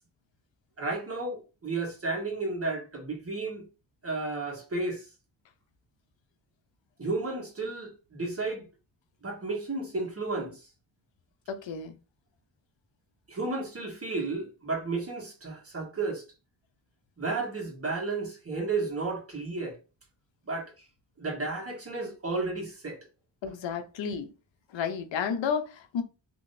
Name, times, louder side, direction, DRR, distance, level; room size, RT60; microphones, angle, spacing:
voice 1, 0.8-3.6 4.0-5.1 7.0-8.6 9.2-10.6 13.3-16.2 17.2-19.8 20.5-20.7 21.2-23.0, right 3 dB, 30° right, 1.4 m, -32 dB
voice 2, 11.5-12.0 23.4-24.3 24.7-26.0, left 6 dB, 75° left, 0.7 m, -32 dB
3.7 x 2.9 x 2.6 m
cardioid pair, 80°, 45 cm